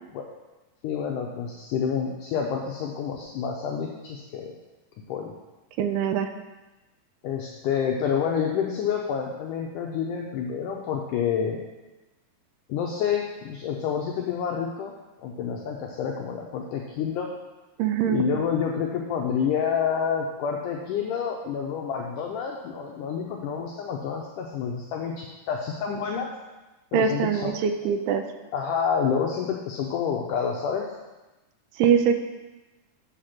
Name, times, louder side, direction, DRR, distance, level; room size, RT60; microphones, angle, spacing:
voice 1, 0.8-4.5 5.1-5.3 7.2-11.6 12.7-14.9 15.2-17.3 18.1-26.3 26.9-27.5 28.5-30.9, left 7 dB, 85° left, 0 dB, 1.8 m, -28 dB
voice 2, 5.8-6.3 17.8-18.2 26.9-28.2 31.8-32.2, right 7 dB, 85° right, 7 dB, 2.5 m, -23 dB
7.8 x 5.0 x 5.9 m, 1.1 s
omnidirectional pair, 4.5 m